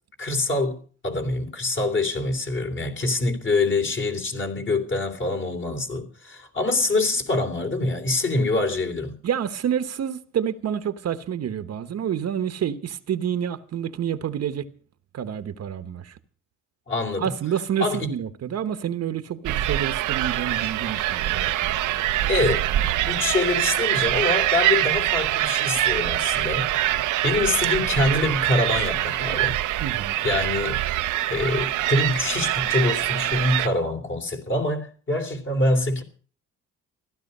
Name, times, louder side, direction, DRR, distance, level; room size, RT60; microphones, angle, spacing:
voice 1, 0.2-9.1 16.9-17.3 17.8-18.1 22.3-22.6 23.1-26.9 27.2-29.6 30.2-30.8 31.3-36.0, left 2 dB, 40° left, 3.2 m, -25 dB
voice 2, 9.2-14.7 15.1-16.2 17.2-22.0 29.8-30.2, right 9 dB, 55° right, 1.1 m, -28 dB
sound 1, 19.4-33.7, right 14 dB, 85° right, 0.8 m, -24 dB
15.5 x 12.5 x 5.4 m
cardioid pair, 90°, 30 cm